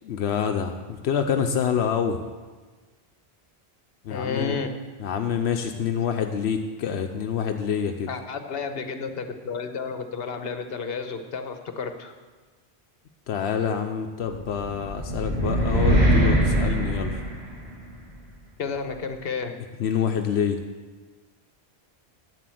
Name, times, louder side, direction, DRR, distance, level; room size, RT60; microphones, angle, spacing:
voice 1, 0.0-2.2 4.0-4.6 5.0-8.1 13.3-17.2 19.8-20.6, left 7 dB, 85° left, 5 dB, 1.0 m, -26 dB
voice 2, 4.1-4.7 8.1-12.1 18.6-19.6, left 5 dB, 65° left, 7 dB, 1.2 m, -31 dB
sound 1, 14.5-17.9, right 1 dB, 85° right, 3.1 m, -22 dB
10.0 x 7.6 x 7.7 m, 1.4 s
omnidirectional pair, 1.1 m